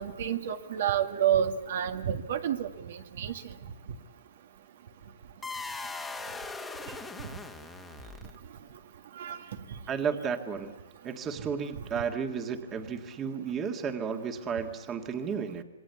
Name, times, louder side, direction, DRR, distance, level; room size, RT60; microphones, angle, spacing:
voice 1, 0.0-3.3 9.2-9.4, right 9 dB, 60° right, 7 dB, 1.8 m, -29 dB
sound 1, 5.4-8.6, left 3 dB, 5° left, 1.6 m, -40 dB
voice 2, 9.9-10.7 11.0-15.6, right 6 dB, 20° right, 6 dB, 1.8 m, -33 dB
27.0 x 21.0 x 8.3 m, 1.0 s
hypercardioid pair, 155°, 0 cm